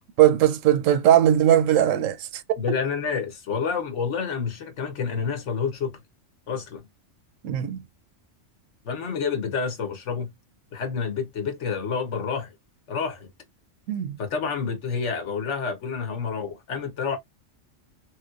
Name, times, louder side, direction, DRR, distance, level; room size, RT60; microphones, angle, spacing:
voice 1, 0.2-2.7 7.4-7.8 13.9-14.2, right 11 dB, 90° right, 0.9 m, -20 dB
voice 2, 2.6-6.0 6.5-6.8 8.8-10.3 10.7-12.5 12.9-13.3 14.2-17.2, left 5 dB, 70° left, 1.1 m, -28 dB
3.1 x 2.9 x 2.3 m
omnidirectional pair, 1.3 m